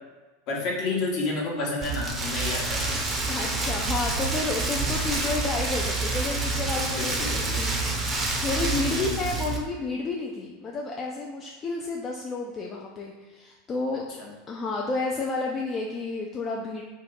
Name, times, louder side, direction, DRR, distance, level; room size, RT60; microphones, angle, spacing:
voice 1, 0.5-2.9 7.0-7.6 8.9-9.2 14.2-14.3, left 3 dB, 50° left, -2 dB, 0.9 m, -30 dB
Rain, 1.8-9.6, right 2 dB, 20° right, 0.6 m, -28 dB
voice 2, 3.3-8.1 8.4-14.0 14.5-16.8, left 3 dB, 30° left, -1 dB, 0.3 m, -31 dB
2.6 x 2.4 x 3.9 m, 1.3 s
figure-of-eight pair, 85°, 0 cm